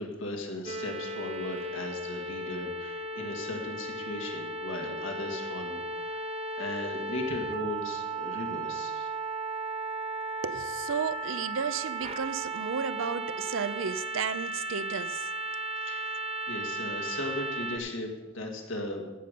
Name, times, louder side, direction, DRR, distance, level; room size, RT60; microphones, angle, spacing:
voice 1, 0.0-6.3 6.6-9.1 15.8-19.2, left 2 dB, 70° left, 2.0 m, -37 dB
sound 1, 0.7-17.8, right 2 dB, 30° right, 0.7 m, -35 dB
voice 2, 10.4-15.3, right 6 dB, 75° right, 0.5 m, -33 dB
15.5 x 5.2 x 6.8 m
head